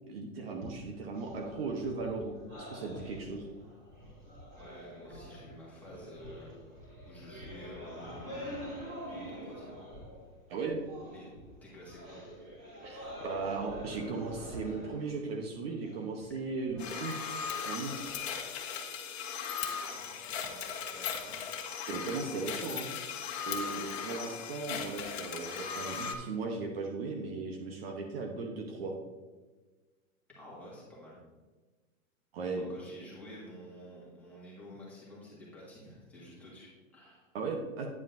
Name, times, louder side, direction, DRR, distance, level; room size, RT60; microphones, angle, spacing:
voice 1, 0.1-3.5 10.5-10.8 12.8-17.3 17.6-18.1 21.9-22.9 23.5-28.9 32.3-32.7 37.3-37.9, right 4 dB, 45° right, 2 dB, 0.9 m, -37 dB
sound 1, 0.6-10.4 10.7-18.6, equal, 25° right, 2.5 m, -46 dB
voice 2, 4.6-6.5 7.0-8.7 9.1-9.9 11.1-11.3 11.6-12.2 19.8-20.6 20.8-21.4 30.3-31.2 32.7-37.3, left 1 dB, 5° left, -7 dB, 1.7 m, -50 dB
sound 2, 16.8-26.2, left 7 dB, 50° left, 1.2 m, -38 dB
9.5 x 7.9 x 2.6 m, 1.3 s
hypercardioid pair, 165°, 41 cm